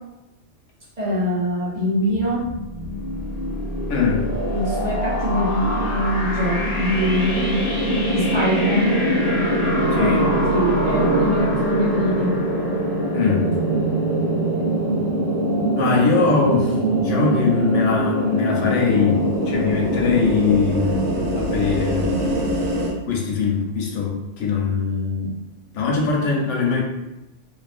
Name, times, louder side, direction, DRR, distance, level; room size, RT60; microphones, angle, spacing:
voice 1, 1.0-2.5 4.4-7.6 8.1-9.0 9.9-12.4, equal, 40° right, -8 dB, 0.7 m, -23 dB
sound 1, 2.1-13.8, left 1 dB, 55° left, 0.9 m, -28 dB
voice 2, 3.9-4.3 9.9-10.3 13.1-13.6 15.8-22.5 23.1-25.4 25.7-26.8, left 5 dB, 85° left, -1 dB, 0.9 m, -21 dB
sound 2, 5.2-22.9, right 1 dB, 75° right, 1.0 m, -23 dB
2.4 x 2.4 x 2.4 m, 0.94 s
omnidirectional pair, 1.2 m